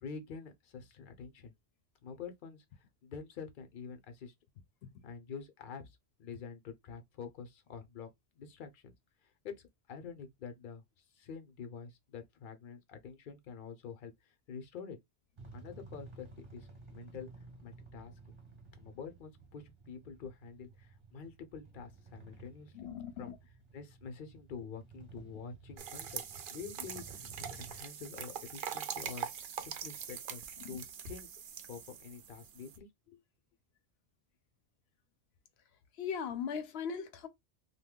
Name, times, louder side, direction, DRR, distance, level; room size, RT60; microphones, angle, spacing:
voice 1, 0.0-1.5 2.0-2.6 3.0-4.3 5.0-8.1 8.3-8.9 9.4-10.8 11.2-15.0 15.5-17.3 17.6-18.1 18.8-22.9 23.2-23.3 23.7-29.3 29.6-31.3 31.7-33.2, left 6 dB, 60° left, 0.8 m, -47 dB
sound 1, 15.4-27.8, right 4 dB, 30° right, 1.0 m, -54 dB
voice 2, 22.7-23.4 30.6-30.8 36.0-37.3, left 7 dB, 90° left, 0.8 m, -39 dB
sound 2, 25.8-32.8, right 8 dB, 65° right, 0.7 m, -43 dB
2.6 x 2.2 x 3.6 m
omnidirectional pair, 1.0 m